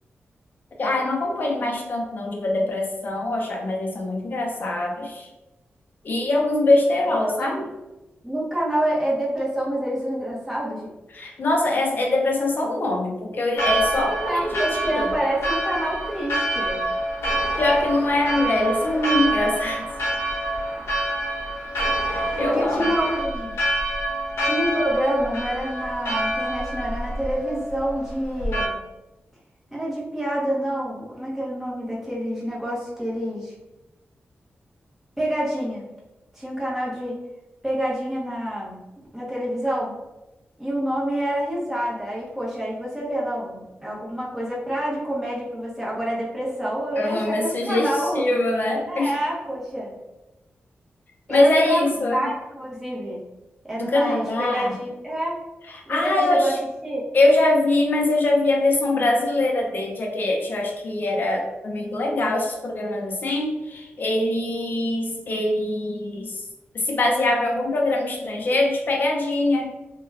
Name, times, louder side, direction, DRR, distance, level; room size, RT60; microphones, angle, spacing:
voice 1, 0.8-5.3 6.0-7.6 11.1-15.1 17.6-19.9 22.1-22.9 47.0-49.1 51.3-52.3 53.8-54.7 55.7-56.6 57.1-66.4 66.7-69.8, left 2 dB, 50° left, 0 dB, 0.5 m, -23 dB
voice 2, 7.2-7.6 8.2-10.9 14.3-16.8 22.4-23.6 24.4-28.8 29.7-33.5 35.2-35.9 36.3-37.2 37.6-38.8 39.1-39.9 40.6-48.2 48.9-50.0 51.3-51.8 52.1-53.2 53.6-55.4 55.9-56.5 56.8-57.0, right 1 dB, 10° right, -6 dB, 0.8 m, -27 dB
Church bell, 13.5-28.7, right 1 dB, 85° left, 0.8 m, -27 dB
2.3 x 2.2 x 3.2 m, 1.0 s
wide cardioid pair, 150°, 4 cm